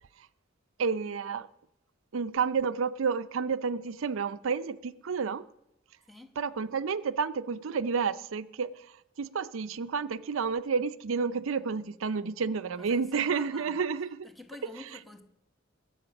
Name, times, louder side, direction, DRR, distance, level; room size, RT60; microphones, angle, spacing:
voice 1, 0.8-1.5 2.1-5.5 6.4-14.3, right 5 dB, 90° right, 0.5 m, -30 dB
voice 2, 12.8-13.8 14.2-15.2, left 1 dB, ahead, 1.4 m, -48 dB
21.0 x 8.4 x 5.9 m
head